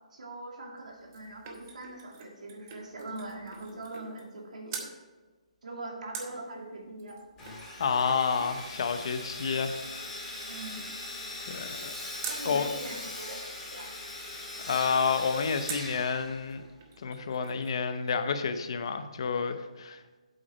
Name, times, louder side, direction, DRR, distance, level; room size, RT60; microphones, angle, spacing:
voice 1, 0.1-4.9 5.6-7.2 10.5-10.9 12.3-13.9, right 2 dB, 85° right, 0 dB, 2.6 m, -42 dB
sound 1, 0.8-4.4 4.7-5.0 6.1-12.5 15.7-16.0 16.5-16.6 16.8-17.8 18.1-18.2, right 6 dB, 25° right, 0.9 m, -46 dB
Sawing, 7.4-16.8, left 2 dB, 10° left, 2.2 m, -41 dB
voice 2, 7.8-10.1 11.5-11.9 12.4-12.7 14.6-16.6 17.0-20.2, left 5 dB, 45° left, 9 dB, 0.7 m, -30 dB
8.2 x 7.8 x 4.4 m, 1.2 s
hypercardioid pair, 175°, 4 cm